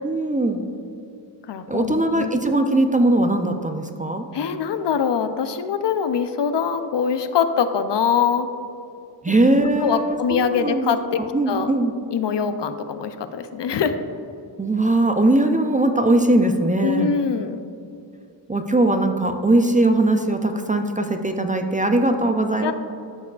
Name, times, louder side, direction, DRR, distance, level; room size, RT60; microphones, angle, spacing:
voice 1, 0.0-0.6 1.7-4.2 9.2-11.9 14.6-17.1 18.5-22.7, right 2 dB, 20° right, 6 dB, 0.4 m, -20 dB
voice 2, 1.5-2.3 4.3-8.5 9.8-11.2 11.5-11.7 12.1-13.9 16.8-17.6 22.6-22.7, left 7 dB, 70° left, 10 dB, 0.5 m, -23 dB
12.5 x 4.7 x 2.3 m, 2.6 s
wide cardioid pair, 70°, 45 cm